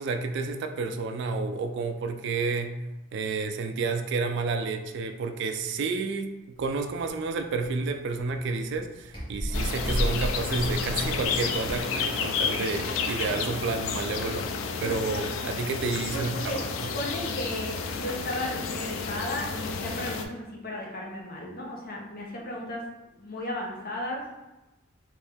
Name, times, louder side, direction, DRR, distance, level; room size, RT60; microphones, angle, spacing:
voice 1, 0.0-2.8 3.1-14.5 14.8-16.9, right 4 dB, 60° right, 7 dB, 0.3 m, -30 dB
sound 1, 6.6-11.8, equal, 25° left, 1.1 m, -34 dB
sound 2, 9.5-20.3, left 5 dB, 75° left, 0.4 m, -31 dB
voice 2, 16.1-16.6 16.9-22.8 23.2-24.2, left 1 dB, 45° left, -2 dB, 0.8 m, -35 dB
3.2 x 2.6 x 3.4 m, 1.0 s
head